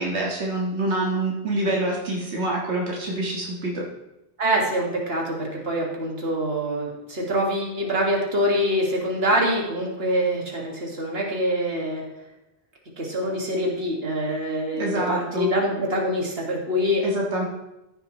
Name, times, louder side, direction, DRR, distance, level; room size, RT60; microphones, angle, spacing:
voice 1, 0.0-3.8 14.7-15.5 17.0-17.4, right 1 dB, 85° right, -3 dB, 1.9 m, -26 dB
voice 2, 4.4-12.0 13.0-17.0, equal, 65° right, -1 dB, 2.2 m, -25 dB
15.0 x 6.8 x 3.1 m, 0.91 s
omnidirectional pair, 1.1 m